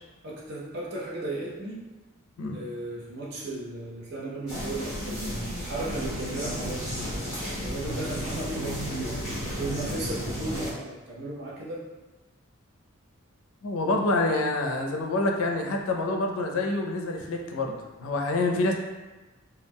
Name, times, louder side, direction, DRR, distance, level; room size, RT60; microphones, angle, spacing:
voice 1, 0.2-1.8 2.5-7.2 7.5-9.2 9.6-11.8, right 2 dB, 50° right, -5 dB, 0.6 m, -35 dB
sound 1, 4.5-10.7, equal, 5° right, 0.8 m, -33 dB
voice 2, 13.6-18.7, left 2 dB, 80° left, 2 dB, 0.4 m, -27 dB
2.3 x 2.1 x 3.4 m, 1.2 s
head